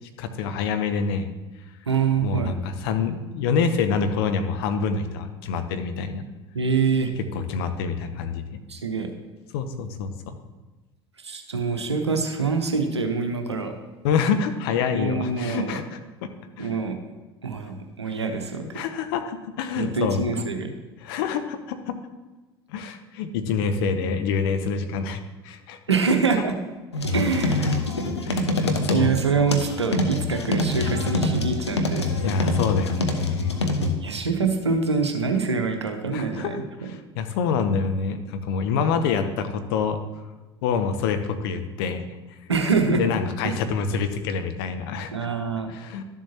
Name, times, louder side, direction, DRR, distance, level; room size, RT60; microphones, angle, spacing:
voice 1, 0.2-1.3 2.2-6.2 7.3-8.6 9.5-10.4 14.0-15.8 16.2-16.3 16.6-16.7 18.6-20.5 21.0-22.0 22.7-25.8 27.6-27.7 28.2-29.1 32.2-33.6 36.1-40.0 40.6-42.0 42.9-45.1 45.7-46.0, left 5 dB, 60° left, 8 dB, 0.8 m, -26 dB
voice 2, 1.9-2.5 6.5-7.1 8.7-9.1 11.2-13.7 14.9-15.8 16.6-17.0 17.4-18.6 19.8-20.7 25.9-26.6 27.1-27.9 28.9-32.0 34.0-36.6 42.5-43.0 43.4-43.5 45.1-45.7, right 5 dB, 90° right, 5 dB, 0.9 m, -25 dB
sound 1, 26.9-33.9, left 2 dB, 90° left, 0.8 m, -25 dB
12.0 x 7.3 x 2.9 m, 1.2 s
figure-of-eight pair, 70°, 14 cm